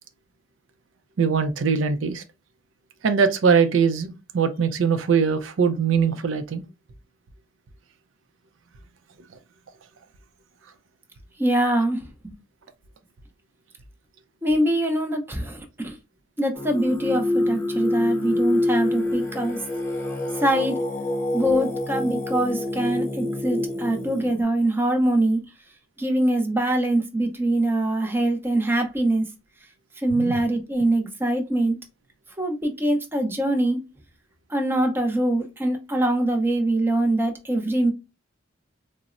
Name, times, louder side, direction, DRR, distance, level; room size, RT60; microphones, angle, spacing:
voice 1, 1.2-2.2 3.0-6.6 30.1-30.4, right 6 dB, 80° right, 0.4 m, -21 dB
voice 2, 11.4-12.4 14.4-16.0 16.4-19.6 20.3-20.8 21.3-25.4 26.0-29.3 30.0-31.8 32.4-33.8 34.5-37.9, right 1 dB, 10° right, 0.5 m, -23 dB
Singing, 16.5-24.4, left 1 dB, 10° left, 1.0 m, -26 dB
4.0 x 2.0 x 2.4 m
head